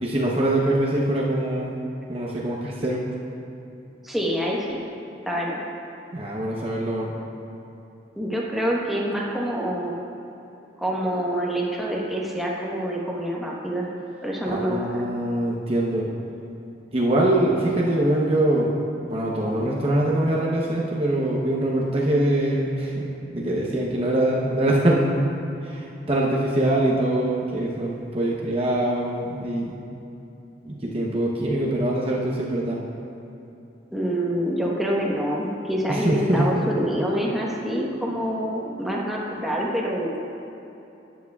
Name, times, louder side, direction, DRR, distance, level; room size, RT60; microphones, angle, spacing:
voice 1, 0.0-1.8 2.1-3.0 6.1-7.1 14.5-16.1 16.9-18.7 19.1-25.2 25.6-29.7 30.6-32.8 35.9-36.5, right 1 dB, 30° right, -3 dB, 0.8 m, -23 dB
voice 2, 4.0-4.8 5.3-5.6 8.1-9.9 10.8-13.9 14.2-15.0 33.9-40.2, equal, ahead, -4 dB, 1.1 m, -26 dB
13.0 x 9.3 x 2.4 m, 2.9 s
head